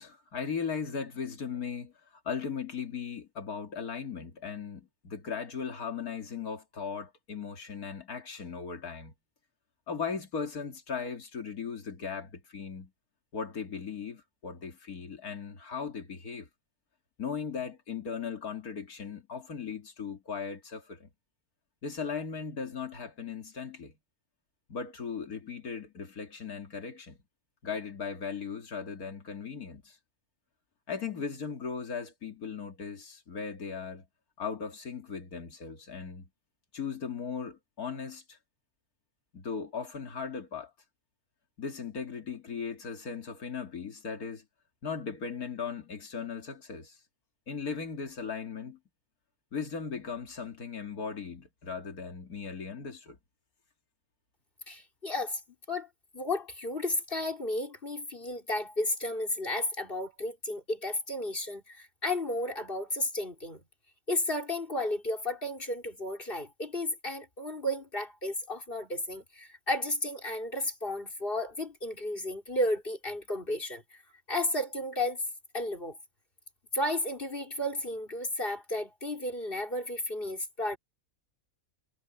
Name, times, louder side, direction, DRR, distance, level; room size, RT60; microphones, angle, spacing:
voice 1, 0.0-1.9 2.2-9.1 9.9-12.9 13.3-16.5 17.2-21.1 21.8-23.9 24.7-27.2 27.6-30.0 30.9-34.1 34.4-36.3 36.7-38.4 39.3-40.7 41.6-44.4 44.8-47.0 47.5-48.8 49.5-53.2, left 6 dB, 75° left, 2.7 m, -38 dB
voice 2, 54.7-55.4 55.7-55.9 56.1-63.6 64.1-74.0 74.3-75.2 75.5-76.0 76.7-80.8, left 1 dB, 35° left, 4.3 m, -33 dB
omnidirectional pair, 1.6 m